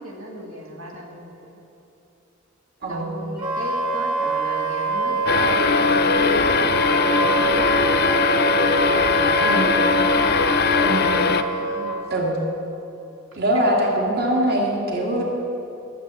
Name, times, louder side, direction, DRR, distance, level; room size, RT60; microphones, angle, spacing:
voice 1, 0.0-1.6 2.9-8.2 8.9-9.7 11.7-12.1 13.5-13.8, equal, 85° right, -1 dB, 1.8 m, -37 dB
voice 2, 2.8-3.3 9.4-9.8 10.8-11.1 12.1-12.4 13.4-15.2, right 1 dB, 50° right, -1 dB, 1.8 m, -23 dB
Wind instrument woodwind instrument, 3.4-11.9, right 4 dB, 25° right, 2.1 m, -25 dB
sound 1, 5.3-11.4, left 5 dB, 50° left, 0.5 m, -20 dB
12.0 x 7.2 x 8.0 m, 2.9 s
head